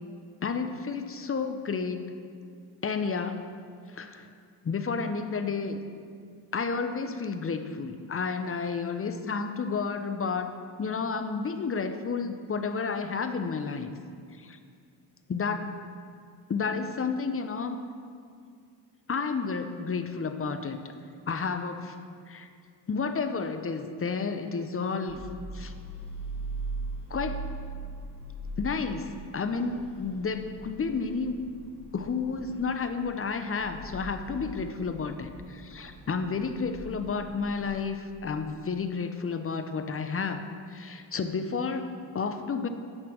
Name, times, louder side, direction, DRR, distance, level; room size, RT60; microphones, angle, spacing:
voice 1, 0.4-2.1 2.8-3.5 3.9-4.3 4.6-5.8 6.5-13.9 14.4-14.6 15.3-15.7 16.5-17.8 19.1-20.9 21.3-22.0 22.3-22.5 22.9-25.2 25.5-25.7 27.1-27.5 28.6-31.4 31.9-42.7, left 5 dB, 30° left, 8 dB, 0.8 m, -31 dB
sound 1, 25.1-37.7, right 2 dB, 15° left, 2.0 m, -41 dB
9.1 x 5.9 x 6.3 m, 2.2 s
hypercardioid pair, 55°, 43 cm